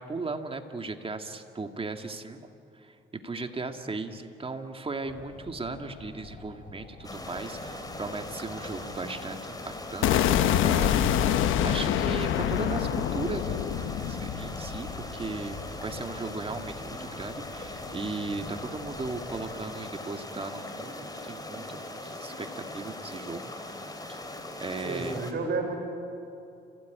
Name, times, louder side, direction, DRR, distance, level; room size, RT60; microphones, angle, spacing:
voice 1, 0.0-2.4 2.7-3.0 3.2-11.0 11.6-13.7 14.0-23.5 24.1-24.2 24.6-25.2, right 3 dB, 30° right, 6 dB, 2.1 m, -37 dB
sound 1, 5.0-19.6, left 2 dB, 45° left, 5.7 m, -47 dB
sound 2, 7.0-25.3, left 1 dB, 20° left, 3.5 m, -40 dB
sound 3, 10.0-16.1, left 10 dB, 90° left, 1.0 m, -26 dB
voice 2, 24.8-25.8, right 3 dB, 60° right, 2 dB, 4.9 m, -31 dB
30.0 x 17.0 x 9.4 m, 2.7 s
cardioid pair, 90°, 20 cm